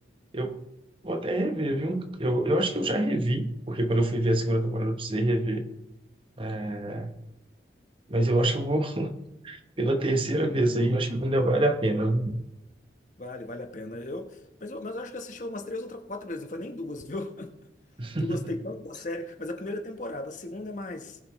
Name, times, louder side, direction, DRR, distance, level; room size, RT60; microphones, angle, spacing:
voice 1, 1.0-5.7 6.4-7.1 8.1-9.1 9.4-12.3 18.0-18.4, right 1 dB, 30° right, 6 dB, 0.9 m, -26 dB
voice 2, 13.2-17.5 18.2-21.2, left 2 dB, 40° left, 6 dB, 1.0 m, -36 dB
20.0 x 7.3 x 3.1 m, 0.91 s
head